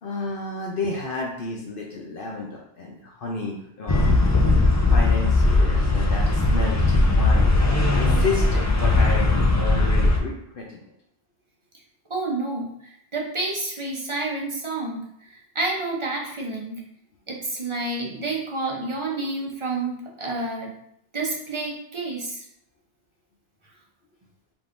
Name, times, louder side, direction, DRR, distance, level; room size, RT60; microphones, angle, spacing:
voice 1, 0.0-4.1 4.9-10.8, left 3 dB, 60° left, -1 dB, 0.8 m, -31 dB
sound 1, 3.9-10.2, left 2 dB, 25° left, 0.3 m, -19 dB
voice 2, 12.1-16.8 17.3-20.7 21.1-22.5, right 2 dB, 30° right, -2 dB, 0.8 m, -29 dB
4.8 x 3.6 x 2.6 m, 0.74 s
omnidirectional pair, 1.1 m